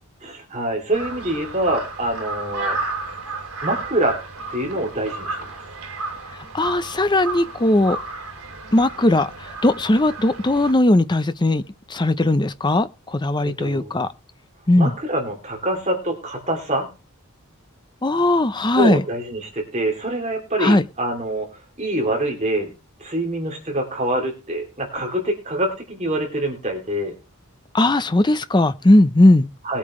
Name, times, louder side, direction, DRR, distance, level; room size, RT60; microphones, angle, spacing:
voice 1, 0.2-2.8 3.6-4.2 4.5-5.6 13.6-14.0 14.8-16.9 18.7-21.5 21.8-22.7 23.0-27.1 29.6-29.8, right 1 dB, 30° right, 2.9 m, -25 dB
Crow, 0.9-10.7, right 3 dB, 80° right, 3.1 m, -32 dB
voice 2, 6.5-8.0 8.7-11.6 11.9-14.1 14.7-14.9 18.0-19.0 20.6-20.8 27.7-29.5, left 1 dB, 20° left, 0.6 m, -18 dB
20.0 x 8.6 x 3.2 m
head